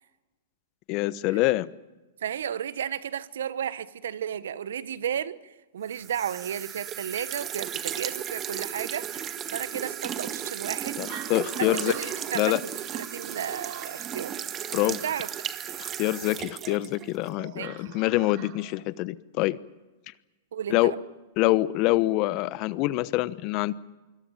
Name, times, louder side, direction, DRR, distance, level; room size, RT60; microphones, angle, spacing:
voice 1, 0.9-1.7 11.0-11.9 12.3-12.6 14.7-15.0 15.8-19.6 20.7-20.9 21.4-23.7, left 18 dB, 45° left, 1.0 m, -25 dB
voice 2, 2.2-5.4 5.7-11.0 11.6-12.5 12.9-14.3 14.9-15.3 17.6-18.0 20.5-21.0, right 9 dB, 75° right, 1.1 m, -33 dB
sound 1, 5.9-17.3, right 9 dB, 30° right, 1.6 m, -35 dB
sound 2, 10.7-18.8, right 12 dB, 50° right, 2.9 m, -45 dB
25.5 x 24.0 x 7.3 m
hypercardioid pair, 110°, 0 cm